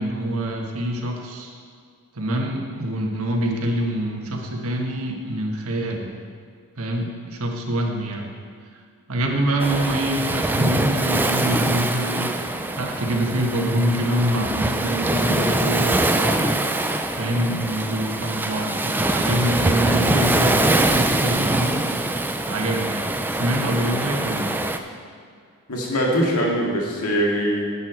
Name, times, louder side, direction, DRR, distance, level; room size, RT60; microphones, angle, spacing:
voice 1, 0.0-1.5 2.1-6.1 6.8-8.3 9.1-12.3 12.8-16.5 17.2-21.9 22.4-24.6, right 1 dB, 75° right, 1 dB, 1.5 m, -25 dB
Waves surf, 9.6-24.8, right 2 dB, 10° right, 0.4 m, -23 dB
voice 2, 25.7-27.7, equal, 85° left, -2 dB, 2.0 m, -22 dB
11.0 x 8.4 x 4.4 m, 2.1 s
head